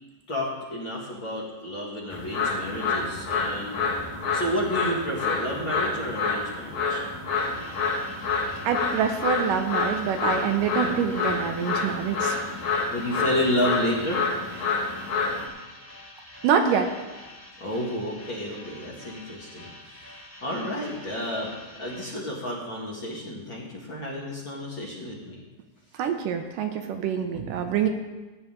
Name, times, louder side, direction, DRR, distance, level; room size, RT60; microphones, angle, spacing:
voice 1, 0.3-3.9 4.3-7.0 12.9-14.3 17.6-19.7 20.4-21.5 21.8-25.4, equal, 40° left, -5 dB, 2.2 m, -30 dB
sound 1, 2.1-15.5, left 4 dB, 60° left, 2.6 m, -28 dB
sound 2, 7.3-22.1, left 1 dB, 5° right, 1.8 m, -47 dB
voice 2, 8.6-12.4 14.6-14.8 16.4-16.9 25.9-27.9, right 7 dB, 75° right, 5 dB, 2.3 m, -26 dB
17.0 x 9.7 x 3.7 m, 1.2 s
omnidirectional pair, 4.1 m